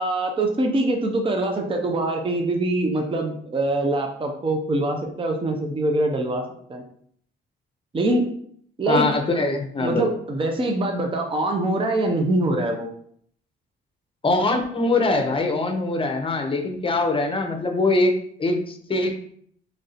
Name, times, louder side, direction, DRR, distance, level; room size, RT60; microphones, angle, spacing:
voice 1, 0.0-6.4 6.7-6.8 7.9-8.3 8.8-9.1 9.8-12.9, right 2 dB, 25° right, 3 dB, 0.6 m, -23 dB
voice 2, 8.9-10.0 14.2-19.1, left 2 dB, 25° left, 4 dB, 0.8 m, -23 dB
3.2 x 2.6 x 4.0 m, 0.63 s
cardioid pair, 90°, 20 cm